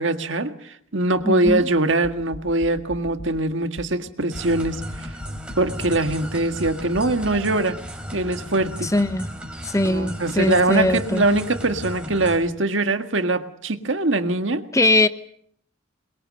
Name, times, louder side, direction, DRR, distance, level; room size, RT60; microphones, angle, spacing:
voice 1, 0.0-5.1 5.6-7.8 8.1-8.9 9.8-14.6, right 2 dB, 70° right, 1.8 m, -22 dB
sound 1, 1.2-7.4, left 1 dB, 85° left, 1.1 m, -40 dB
voice 2, 1.2-1.7 8.8-9.3 9.6-11.2 14.7-15.1, left 2 dB, 15° left, 0.9 m, -21 dB
sound 2, 4.3-12.4, equal, 5° right, 4.5 m, -35 dB
27.5 x 22.0 x 6.5 m
head